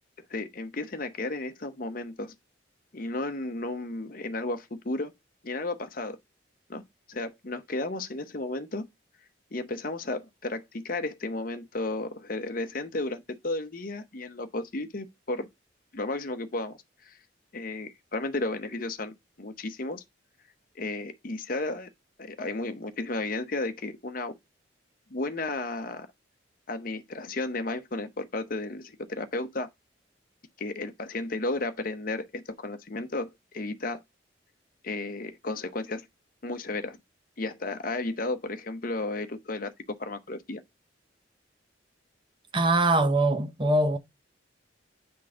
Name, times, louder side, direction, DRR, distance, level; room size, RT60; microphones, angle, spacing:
voice 1, 0.3-2.3 2.9-5.1 5.4-6.2 6.7-6.8 7.1-8.9 9.5-15.5 15.9-16.8 17.0-17.2 17.5-20.0 20.8-21.9 22.2-24.3 25.1-26.1 26.7-29.7 30.6-34.0 34.8-36.1 36.4-37.0 37.4-39.7 40.0-40.6, left 2 dB, 45° left, 0.8 m, -33 dB
voice 2, 42.5-44.0, right 2 dB, 25° right, 0.7 m, -23 dB
8.6 x 3.8 x 3.7 m
head